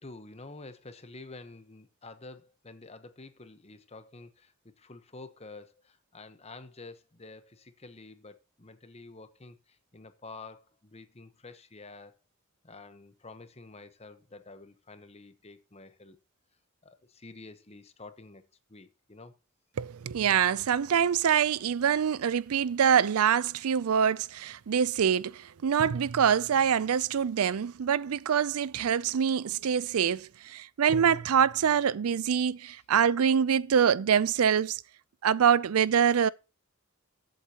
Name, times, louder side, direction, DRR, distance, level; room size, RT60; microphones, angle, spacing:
voice 1, 0.0-12.2 12.6-16.2 16.8-19.3, left 3 dB, 30° left, 1.1 m, -49 dB
voice 2, 19.8-34.8 35.2-36.3, right 8 dB, 85° right, 0.4 m, -25 dB
14.0 x 8.1 x 2.9 m
head